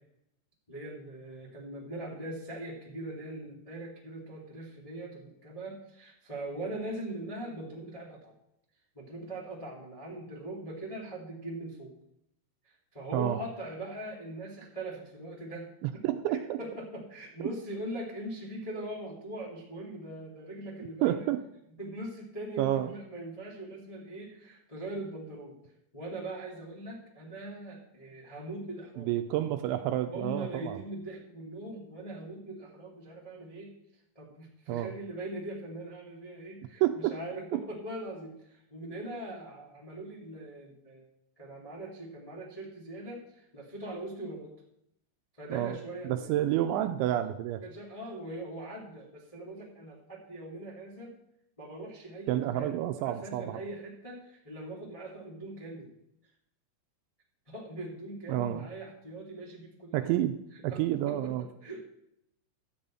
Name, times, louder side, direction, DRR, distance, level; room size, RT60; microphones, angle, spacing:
voice 1, 0.7-8.3 8.9-11.9 12.6-16.0 16.3-21.3 21.8-29.1 30.1-33.7 34.1-41.0 41.3-44.5 45.4-46.8 47.6-51.1 51.6-55.9 57.4-60.1 60.7-61.8, right 1 dB, 20° left, -3 dB, 0.8 m, -41 dB
voice 2, 15.8-16.4 17.4-17.5 21.0-21.4 22.6-22.9 29.0-30.8 34.7-34.9 36.8-37.1 37.5-37.6 45.5-45.8 46.0-47.6 52.3-53.6 58.3-58.7 59.9-60.4 60.6-61.5, right 13 dB, 85° right, 8 dB, 2.7 m, -29 dB
12.5 x 5.4 x 8.7 m, 0.78 s
omnidirectional pair, 5.7 m